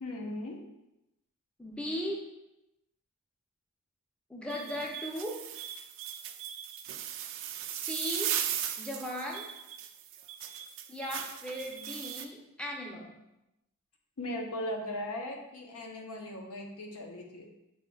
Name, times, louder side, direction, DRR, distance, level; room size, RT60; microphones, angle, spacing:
voice 1, 0.0-0.6 14.2-17.5, left 1 dB, 85° left, 2 dB, 0.7 m, -38 dB
voice 2, 1.6-2.3 4.3-5.4 7.7-8.4 8.8-9.5 10.9-13.2, equal, 5° left, -2 dB, 0.5 m, -37 dB
sound 1, 4.5-12.3, right 10 dB, 60° right, 0.3 m, -37 dB
6.9 x 2.6 x 2.3 m, 0.91 s
head